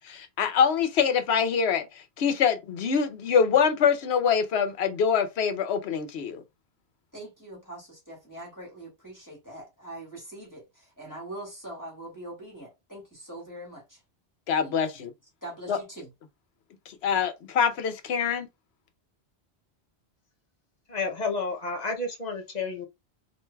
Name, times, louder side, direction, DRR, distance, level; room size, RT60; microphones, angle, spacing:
voice 1, 0.1-1.9 2.2-6.4 14.5-15.1 15.7-15.8 17.0-18.5, left 7 dB, 80° left, 0.9 m, -24 dB
voice 2, 7.1-14.0 14.6-14.8 15.4-16.1, right 1 dB, 20° left, 1.6 m, -42 dB
voice 3, 20.9-22.9, left 3 dB, 45° left, 0.7 m, -31 dB
4.4 x 2.6 x 2.2 m
omnidirectional pair, 1.1 m